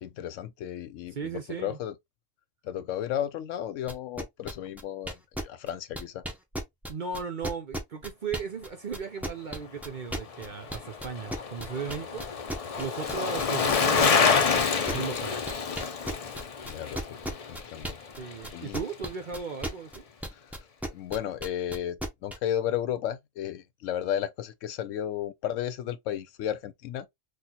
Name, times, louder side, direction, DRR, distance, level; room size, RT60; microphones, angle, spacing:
voice 1, 0.0-1.9 2.6-6.2 16.6-17.2 17.5-18.0 18.5-18.8 20.3-20.7 20.9-27.1, left 10 dB, 80° left, 0.9 m, -33 dB
voice 2, 1.1-1.8 6.9-12.3 12.8-15.4 18.2-20.0, right 6 dB, 50° right, 0.6 m, -36 dB
sound 1, 3.9-8.7 8.9-18.2 18.4-22.4, equal, ahead, 0.6 m, -35 dB
Bicycle, 10.2-18.6 18.9-19.0, left 5 dB, 65° left, 0.3 m, -28 dB
4.1 x 2.4 x 2.8 m
omnidirectional pair, 1.3 m